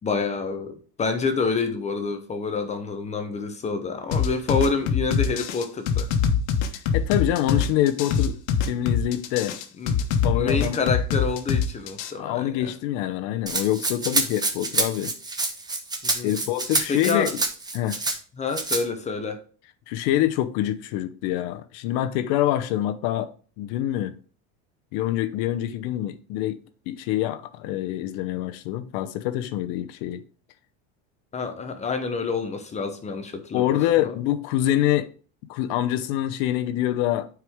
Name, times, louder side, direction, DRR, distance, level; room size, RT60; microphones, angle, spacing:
voice 1, 0.0-6.1 9.8-10.0 10.3-12.7 16.0-16.3 16.9-17.3 18.4-19.4 31.3-33.7 34.0-34.2, left 4 dB, 20° left, 0.8 m, -28 dB
sound 1, 4.1-12.1, left 7 dB, 80° left, 1.3 m, -23 dB
voice 2, 6.9-8.4 8.6-9.5 10.2-10.8 12.2-15.1 16.2-17.3 17.7-18.0 19.9-23.3 23.6-24.2 24.9-26.6 26.9-30.2 33.5-35.1 35.5-37.3, left 13 dB, 65° left, 0.8 m, -25 dB
Rattle (instrument), 13.5-18.2 18.5-18.8, right 3 dB, 10° right, 0.9 m, -27 dB
9.0 x 4.7 x 3.6 m
cardioid pair, 145°, 33 cm